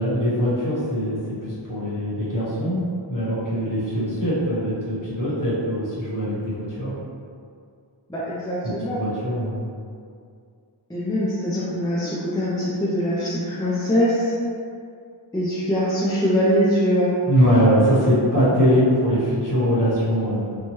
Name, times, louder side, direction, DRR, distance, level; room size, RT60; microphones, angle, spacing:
voice 1, 0.0-2.8 3.1-6.9 8.8-9.7 17.3-20.6, equal, 40° left, -10 dB, 1.1 m, -22 dB
voice 2, 8.1-9.0 10.9-14.3 15.3-17.1, equal, 10° left, -8 dB, 0.5 m, -22 dB
2.9 x 2.3 x 3.0 m, 2.3 s
wide cardioid pair, 45°, 48 cm